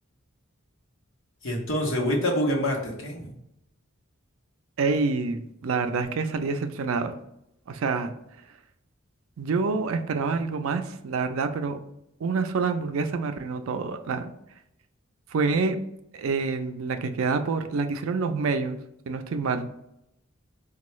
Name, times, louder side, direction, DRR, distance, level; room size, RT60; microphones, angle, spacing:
voice 1, 1.4-3.3, equal, 65° left, 0 dB, 1.0 m, -26 dB
voice 2, 4.8-7.2 7.7-8.1 9.4-11.8 12.2-14.3 15.3-15.8 16.1-18.8 19.1-19.7, right 4 dB, 70° right, 8 dB, 0.4 m, -27 dB
4.4 x 2.3 x 3.0 m, 0.81 s
head